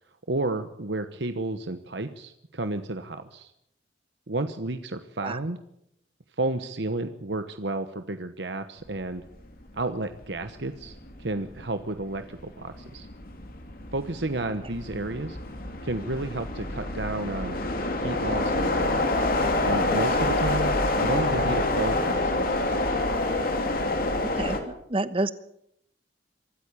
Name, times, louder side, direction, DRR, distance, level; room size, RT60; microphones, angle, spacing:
voice 1, 0.3-3.5 4.3-5.6 6.4-9.2 9.7-13.1 13.9-15.4 15.8-17.6 17.9-19.0 19.6-22.3 22.7-22.8, right 2 dB, 65° right, 9 dB, 1.2 m, -31 dB
sound 1, 9.6-9.8 10.2-24.6, left 2 dB, 50° left, 3.0 m, -27 dB
voice 2, 24.2-25.3, right 2 dB, 30° right, 13 dB, 1.1 m, -29 dB
24.5 x 13.5 x 8.4 m, 0.75 s
head